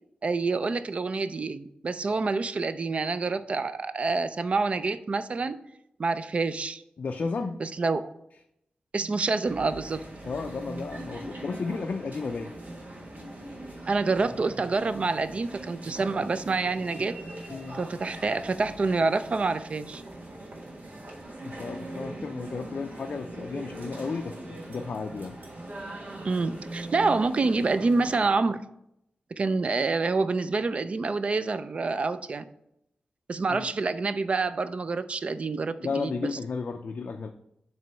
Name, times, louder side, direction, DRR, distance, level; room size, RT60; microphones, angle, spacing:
voice 1, 0.2-5.6 6.0-6.8 7.6-8.1 8.9-10.0 13.9-17.2 17.7-20.0 26.2-28.6 29.4-32.5 33.3-36.1, right 3 dB, 40° right, 12 dB, 0.3 m, -27 dB
voice 2, 7.0-7.6 10.2-12.5 17.5-17.8 21.4-25.4 33.5-33.7 35.8-37.3, left 4 dB, 55° left, 4 dB, 0.4 m, -33 dB
sound 1, 9.4-28.3, right 1 dB, 85° right, 1.3 m, -41 dB
7.5 x 3.0 x 5.6 m, 0.79 s
wide cardioid pair, 165°, 3 cm